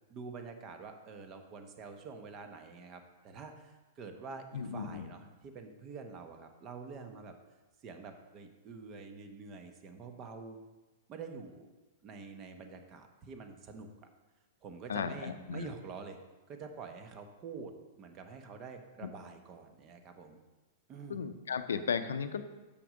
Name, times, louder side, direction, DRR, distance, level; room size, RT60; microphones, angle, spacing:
voice 1, 0.1-7.3 7.8-10.6 11.1-11.7 12.0-13.9 14.6-16.2 16.5-20.4 20.9-21.2, right 5 dB, 35° right, 6 dB, 1.1 m, -47 dB
voice 2, 4.5-5.1 14.9-15.7 19.0-19.1 21.1-22.6, left 6 dB, 85° left, 10 dB, 0.5 m, -35 dB
6.8 x 5.9 x 5.1 m, 1.2 s
hypercardioid pair, 115°, 0 cm